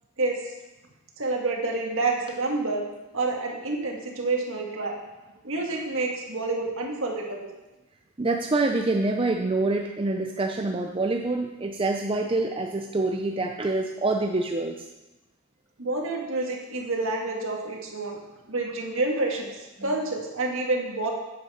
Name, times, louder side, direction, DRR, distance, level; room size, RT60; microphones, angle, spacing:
voice 1, 0.2-0.5 1.2-2.8 3.1-5.0 5.4-7.5 15.8-18.2 18.5-21.1, right 2 dB, 60° right, 0 dB, 1.8 m, -28 dB
voice 2, 8.2-14.7, right 2 dB, 25° right, 3 dB, 0.5 m, -26 dB
8.6 x 8.3 x 5.6 m, 1.0 s
head